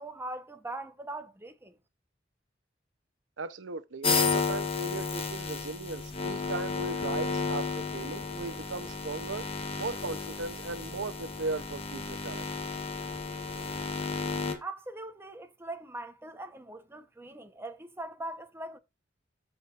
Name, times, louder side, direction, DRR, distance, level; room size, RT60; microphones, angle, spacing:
voice 1, 0.0-1.8 14.6-18.8, right 2 dB, 15° right, 1.0 m, -41 dB
voice 2, 3.4-9.4 9.8-12.5, right 3 dB, 85° right, 0.8 m, -37 dB
sound 1, 4.0-14.5, left 4 dB, 30° left, 1.7 m, -33 dB
14.0 x 5.0 x 2.5 m
head